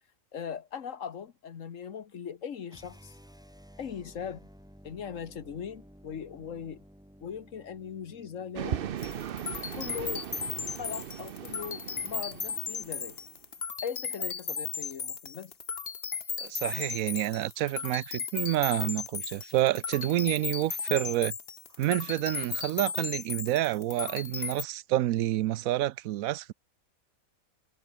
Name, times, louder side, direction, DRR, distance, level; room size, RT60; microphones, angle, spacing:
voice 1, 0.3-3.2 3.8-4.5 4.8-6.8 7.2-8.9 9.7-10.3 10.8-13.2 13.8-15.5, left 7 dB, 65° left, 1.6 m, -39 dB
sound 1, 2.7-8.9, equal, 5° right, 4.0 m, -54 dB
sound 2, 8.5-13.3, right 10 dB, 55° right, 0.7 m, -38 dB
sound 3, 9.0-24.6, left 6 dB, 45° left, 1.6 m, -36 dB
voice 2, 16.4-21.3 21.8-26.5, right 14 dB, 80° right, 1.0 m, -28 dB
omnidirectional pair, 1.4 m